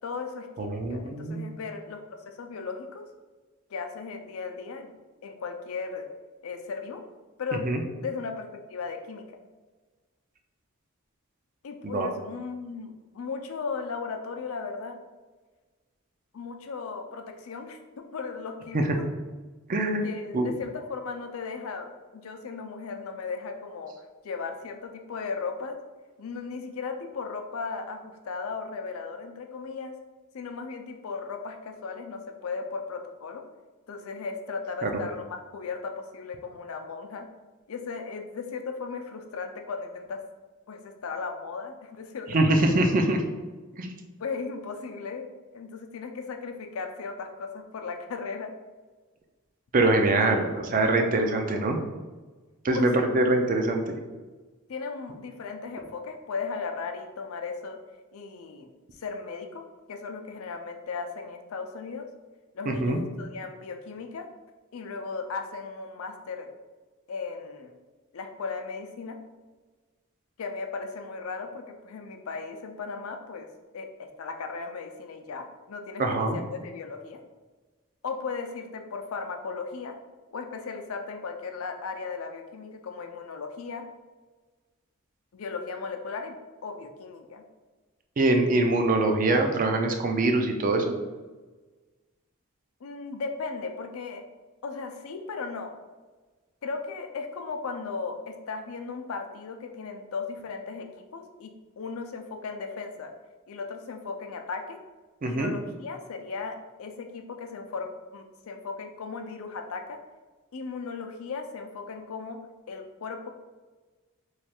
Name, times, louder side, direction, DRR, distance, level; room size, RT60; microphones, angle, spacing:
voice 1, 0.0-2.0 2.3-3.0 3.7-4.9 5.2-6.1 6.4-7.0 7.4-7.6 8.0-9.2 11.6-15.0 16.3-17.8 18.1-19.1 20.0-23.9 24.2-25.8 26.2-29.9 30.3-33.4 33.9-37.2 37.7-40.2 40.7-42.7 44.2-45.3 45.5-48.5 52.7-53.1 54.7-57.8 58.1-58.7 59.0-59.6 59.9-62.1 62.5-64.2 64.7-66.5 67.1-67.7 68.1-69.2 70.4-73.5 73.7-77.2 78.0-79.9 80.3-83.8 85.3-86.4 86.6-87.4 92.8-94.2 94.6-95.7 96.6-101.5 101.8-103.1 103.5-104.8 105.3-110.0 110.5-112.4 112.7-113.3, left 4 dB, 85° left, 5 dB, 0.5 m, -36 dB
voice 2, 0.6-1.5 7.6-7.8 11.8-12.1 18.7-18.9 19.7-20.1 20.3-20.5 34.8-34.9 42.3-43.2 43.8-43.9 49.7-51.8 52.6-54.0 62.7-63.0 76.0-76.4 88.2-90.9 105.2-105.5, right 2 dB, 40° right, 4 dB, 0.4 m, -24 dB
3.2 x 2.3 x 4.3 m, 1.3 s
head